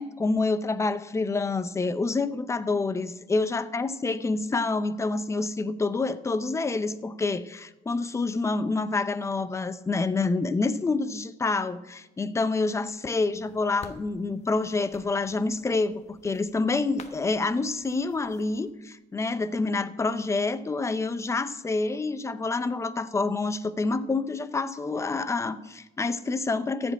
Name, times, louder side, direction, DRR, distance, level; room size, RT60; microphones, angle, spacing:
voice 1, 0.0-26.9, left 3 dB, 15° left, 13 dB, 0.6 m, -27 dB
sound 1, 13.3-18.7, left 4 dB, 40° left, 1.1 m, -51 dB
14.5 x 5.2 x 8.9 m, 1.0 s
cardioid pair, 110°, 17 cm